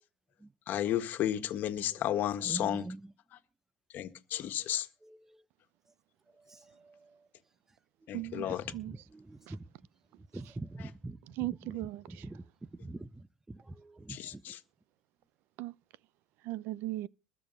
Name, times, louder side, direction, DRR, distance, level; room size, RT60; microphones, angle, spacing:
voice 1, 0.7-2.9 3.9-4.9 8.1-8.6 10.8-10.9 14.1-14.6, left 11 dB, 50° left, 1.6 m, -33 dB
voice 2, 2.4-3.0 5.1-5.4 6.5-7.2 8.9-9.6 10.3-11.7 12.1-12.4 12.8-14.4, right 2 dB, 10° right, 0.6 m, -44 dB
voice 3, 8.1-8.9 9.5-9.6 11.4-12.2 15.6-15.7 16.4-17.1, right 18 dB, 65° right, 0.6 m, -37 dB
21.0 x 7.1 x 5.5 m
cardioid pair, 130°, 4 cm